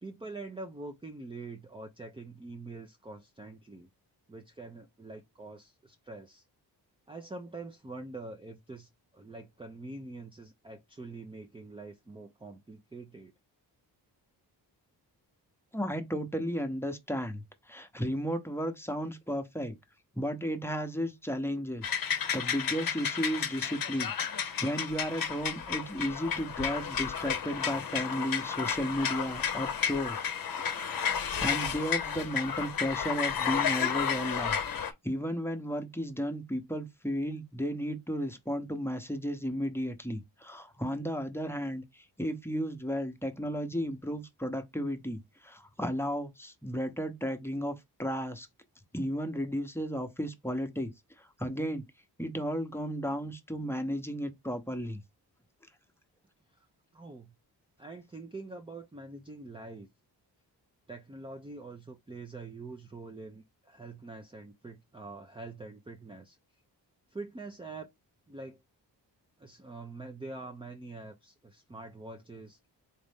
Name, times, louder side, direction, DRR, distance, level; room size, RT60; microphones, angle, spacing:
voice 1, 0.0-3.9 4.3-6.4 7.1-13.3 56.6-56.7 56.9-57.3 57.8-59.9 60.9-66.4 67.1-67.9 68.3-68.6 69.4-72.6, right 3 dB, 15° right, 0.6 m, -45 dB
voice 2, 15.7-19.8 20.1-30.3 30.6-48.5 48.9-50.9 51.2-51.8 52.2-55.0, equal, 5° left, 0.9 m, -34 dB
sound 1, 21.8-34.9, left 7 dB, 55° left, 0.8 m, -32 dB
4.1 x 2.5 x 3.5 m
cardioid pair, 65°, 42 cm